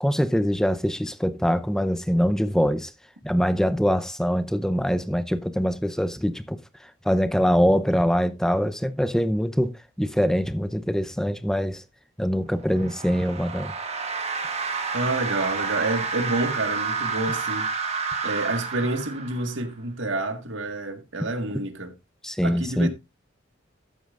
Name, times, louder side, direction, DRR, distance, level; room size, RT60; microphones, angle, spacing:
voice 1, 0.0-2.9 3.2-6.6 7.0-11.8 12.2-13.7 22.2-22.9, equal, 5° left, 0.7 m, -23 dB
sound 1, 12.6-19.7, right 5 dB, 35° right, 1.5 m, -30 dB
voice 2, 14.9-17.7 18.2-21.9 22.4-22.9, right 2 dB, 80° right, 1.8 m, -28 dB
13.0 x 8.8 x 2.5 m
head